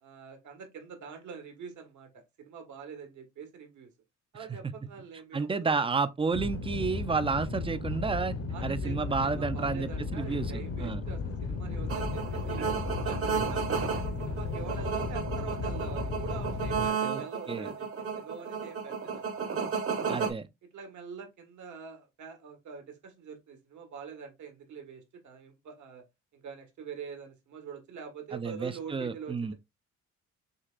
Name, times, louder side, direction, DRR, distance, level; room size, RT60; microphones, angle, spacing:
voice 1, 0.0-3.9 4.3-5.7 8.5-12.7 13.0-19.4 19.9-20.3 20.7-26.0 26.3-29.5, right 6 dB, 75° right, 1.6 m, -45 dB
voice 2, 5.3-8.3 8.6-11.1 17.0-17.2 17.5-17.7 20.1-20.5 28.3-29.5, right 4 dB, 20° right, 0.5 m, -31 dB
sound 1, 6.3-16.9, left 4 dB, 50° left, 1.0 m, -35 dB
sound 2, 11.9-20.3, right 6 dB, 50° right, 1.1 m, -33 dB
6.5 x 2.9 x 2.4 m
cardioid pair, 90°, 30 cm